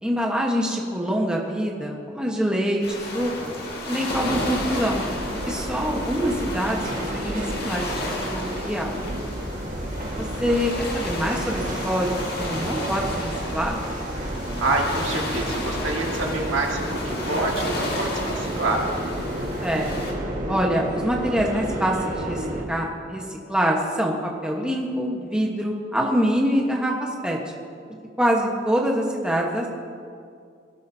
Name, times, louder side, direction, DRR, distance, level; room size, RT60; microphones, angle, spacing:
voice 1, 0.0-3.3 3.9-5.0 5.4-9.0 10.2-13.9 19.6-19.9 20.5-27.4 28.2-29.7, equal, 5° right, -1 dB, 1.1 m, -25 dB
sound 1, 2.8-20.1, left 1 dB, 50° left, 1.9 m, -33 dB
sound 2, 4.1-22.6, right 1 dB, 40° right, 1.5 m, -31 dB
voice 2, 14.6-18.9, right 2 dB, 85° right, 0 dB, 1.9 m, -27 dB
20.0 x 12.5 x 2.8 m, 2.3 s
head